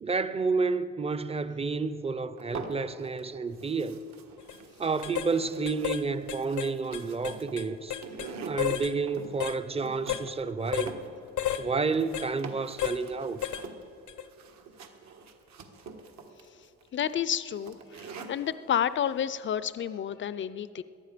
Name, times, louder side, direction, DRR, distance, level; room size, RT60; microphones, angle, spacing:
voice 1, 0.0-4.0 4.8-8.0 8.5-10.9 11.6-13.4, right 4 dB, 20° right, 0.7 m, -30 dB
sound 1, 2.4-3.2 3.5-18.5, right 4 dB, 65° right, 1.6 m, -45 dB
sound 2, 4.4-4.6 5.0-5.3 5.7-6.0 6.3-8.3 8.6-8.9 9.4-9.6 10.1-10.3 10.7-10.9 11.4-11.6 12.1-12.3 12.8-13.0 13.4-13.7 14.1-14.2, left 11 dB, 80° left, 0.8 m, -32 dB
voice 2, 16.9-20.8, left 9 dB, 40° left, 0.5 m, -30 dB
18.5 x 11.5 x 5.1 m
cardioid pair, 90°, 30 cm